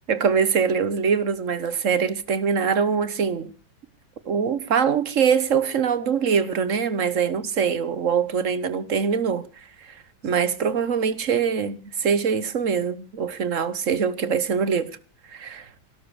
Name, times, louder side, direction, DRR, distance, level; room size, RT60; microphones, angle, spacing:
voice 1, 0.1-3.5 4.3-9.5 9.8-9.9 10.2-14.9 15.3-15.7, right 6 dB, 50° right, 1.3 m, -23 dB
17.5 x 12.5 x 4.9 m
omnidirectional pair, 2.1 m